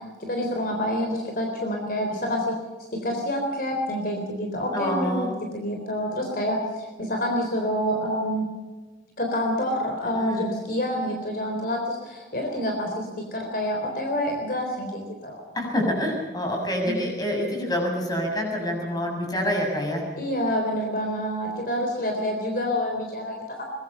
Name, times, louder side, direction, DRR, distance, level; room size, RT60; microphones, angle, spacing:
voice 1, 0.0-2.5 2.9-5.3 5.5-8.5 9.2-15.4 16.8-17.0 20.2-23.7, equal, 50° left, 2 dB, 3.8 m, -27 dB
voice 2, 4.7-5.3 10.1-10.5 15.5-20.0, equal, 20° left, 1 dB, 6.8 m, -27 dB
23.5 x 21.0 x 5.6 m, 1.3 s
head